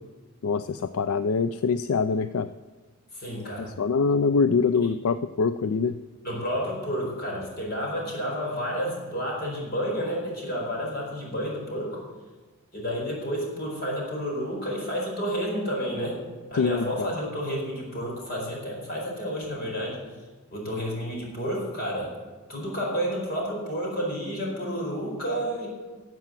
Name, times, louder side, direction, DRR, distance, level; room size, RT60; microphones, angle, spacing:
voice 1, 0.4-2.5 3.6-6.0 16.5-17.1, left 5 dB, 70° left, 13 dB, 0.4 m, -24 dB
voice 2, 3.1-3.7 6.2-12.0 12.7-16.2 16.5-20.0 20.5-22.1 22.5-25.7, equal, 45° left, -2 dB, 4.7 m, -30 dB
13.0 x 7.7 x 7.5 m, 1.4 s
head